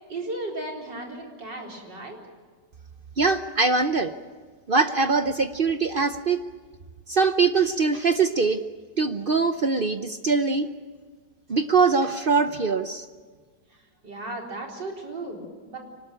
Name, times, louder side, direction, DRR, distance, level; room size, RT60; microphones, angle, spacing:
voice 1, 0.1-2.2 14.0-15.8, right 2 dB, 70° right, 0 dB, 4.8 m, -35 dB
voice 2, 3.2-4.1 4.7-6.4 7.1-8.6 9.0-10.7 11.5-13.1, right 4 dB, 50° right, 9 dB, 0.6 m, -22 dB
25.0 x 19.5 x 9.1 m, 1.5 s
omnidirectional pair, 1.9 m